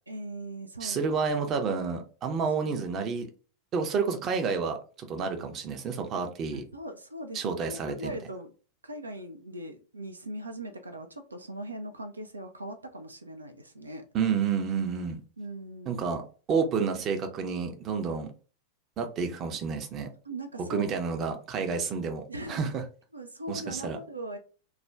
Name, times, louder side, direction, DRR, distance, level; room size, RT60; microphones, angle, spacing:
voice 1, 0.1-1.5 2.6-2.9 6.7-8.5 8.8-14.1 15.4-16.0 20.2-21.0 22.3-22.7 23.1-24.4, right 1 dB, 80° right, 0.3 m, -40 dB
voice 2, 0.8-3.3 3.7-6.6 7.3-8.2 14.1-15.2 15.9-16.2 16.5-18.3 19.0-20.1 20.7-22.2 22.5-22.8 23.5-24.0, right 5 dB, 30° right, 0.5 m, -30 dB
2.4 x 2.1 x 3.3 m
figure-of-eight pair, 90°, 0 cm